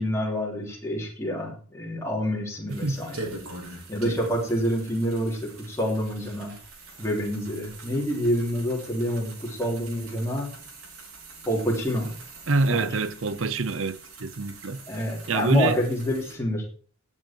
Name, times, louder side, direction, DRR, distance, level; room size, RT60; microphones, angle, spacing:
voice 1, 0.0-3.2 3.9-6.5 7.0-10.5 11.5-12.1 12.7-12.9 14.9-16.6, equal, 15° left, 3.4 m, -27 dB
voice 2, 2.7-3.0 12.5-14.8 15.3-15.8, right 3 dB, 65° right, 0.8 m, -25 dB
sound 1, 2.7-16.3, right 2 dB, 80° right, 4.6 m, -43 dB
16.5 x 8.1 x 4.6 m
head